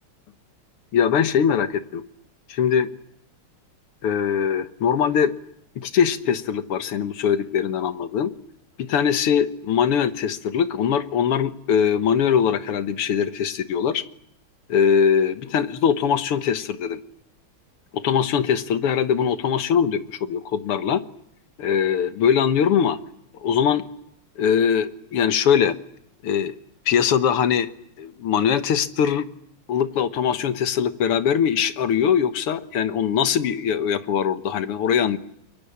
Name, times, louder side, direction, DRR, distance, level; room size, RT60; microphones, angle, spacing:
voice 1, 0.9-2.0 2.5-2.9 4.0-5.3 5.8-8.3 8.8-14.0 14.7-17.0 17.9-21.0 21.6-23.0 23.3-23.8 24.4-25.8 26.2-26.6 26.9-27.7 28.0-29.3 29.7-35.2, left 8 dB, 85° left, 12 dB, 2.2 m, -21 dB
29.5 x 22.5 x 8.6 m, 0.75 s
omnidirectional pair, 2.4 m